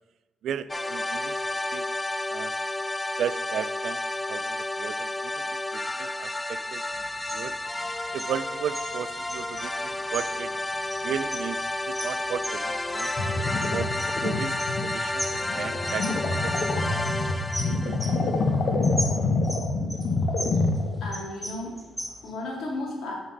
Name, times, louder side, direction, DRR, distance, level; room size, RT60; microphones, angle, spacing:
voice 1, 0.4-1.9 2.3-2.5 3.2-6.8 7.3-7.6 8.1-10.5 11.0-11.6 11.9-13.4 13.7-13.9 14.2-17.0 17.6-18.1, right 9 dB, 70° right, 16 dB, 0.3 m, -35 dB
sound 1, 0.7-18.5, left 2 dB, 15° left, 0.3 m, -31 dB
sound 2, 6.9-22.3, right 1 dB, 5° right, 1.1 m, -39 dB
sound 3, 13.2-21.1, left 3 dB, 50° left, 0.9 m, -27 dB
voice 2, 21.0-23.1, left 2 dB, 70° left, -3 dB, 2.6 m, -34 dB
6.2 x 5.7 x 5.1 m, 1.2 s
cardioid pair, 90°, 0 cm